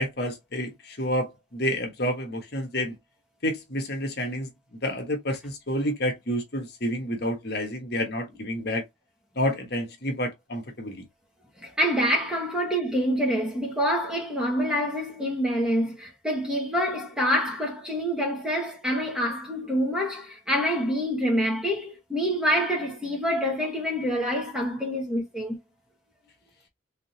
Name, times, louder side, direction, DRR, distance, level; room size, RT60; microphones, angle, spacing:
voice 1, 0.0-2.9 3.4-4.5 4.8-8.8 9.4-11.0, equal, 55° left, 1.3 m, -29 dB
voice 2, 11.6-25.6, equal, 5° right, 1.4 m, -26 dB
3.8 x 3.7 x 2.9 m
head